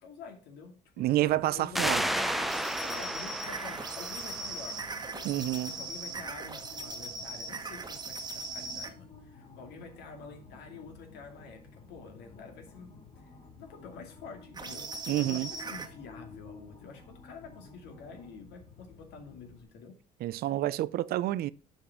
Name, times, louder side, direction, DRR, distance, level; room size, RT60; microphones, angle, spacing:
voice 1, 0.0-4.8 5.0-5.3 5.6-19.9, left 4 dB, 80° left, 2.4 m, -48 dB
voice 2, 1.0-2.0 5.2-5.7 15.1-15.5 20.2-21.5, right 14 dB, 65° right, 0.5 m, -29 dB
sound 1, 1.3-19.6, left 4 dB, 35° left, 4.1 m, -53 dB
sound 2, 1.7-5.1, equal, ahead, 0.5 m, -33 dB
sound 3, 2.1-8.9 14.5-15.9, right 3 dB, 25° right, 1.3 m, -39 dB
7.1 x 5.2 x 5.8 m
cardioid pair, 110°, 17 cm